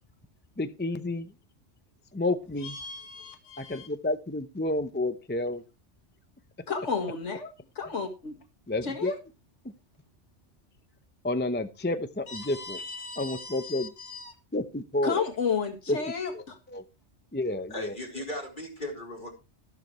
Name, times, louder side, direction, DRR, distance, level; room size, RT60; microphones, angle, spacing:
voice 1, 0.6-1.3 2.1-2.8 3.6-5.6 8.7-9.1 11.2-12.8 13.2-13.9 14.5-15.2 15.9-16.0 16.3-16.8 17.3-18.0, left 2 dB, 10° left, 10 dB, 0.6 m, -30 dB
voice 2, 2.6-3.9 6.7-8.3 8.8-9.2 12.3-14.3 15.0-16.6, left 5 dB, 85° left, 5 dB, 2.1 m, -33 dB
voice 3, 17.7-19.3, left 1 dB, 45° left, 0 dB, 4.6 m, -37 dB
13.5 x 12.0 x 3.1 m, 0.28 s
omnidirectional pair, 1.2 m